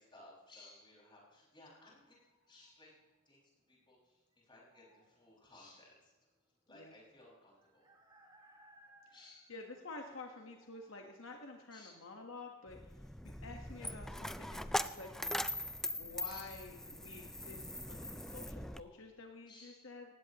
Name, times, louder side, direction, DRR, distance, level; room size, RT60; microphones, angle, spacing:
voice 1, 0.0-2.2 2.5-3.0 3.3-6.1 6.7-7.9 9.1-9.6 11.7-11.9 16.2-16.6 19.5-19.9, left 2 dB, 20° left, -4 dB, 5.6 m, -59 dB
sound 1, 1.9-16.6, right 1 dB, 20° right, 2.5 m, -69 dB
voice 2, 9.5-12.9 13.2-15.4 16.0-20.1, left 3 dB, 65° left, 2 dB, 1.4 m, -50 dB
Coin (dropping), 12.7-18.8, left 1 dB, ahead, 0.3 m, -41 dB
18.5 x 16.0 x 3.0 m, 1.3 s
head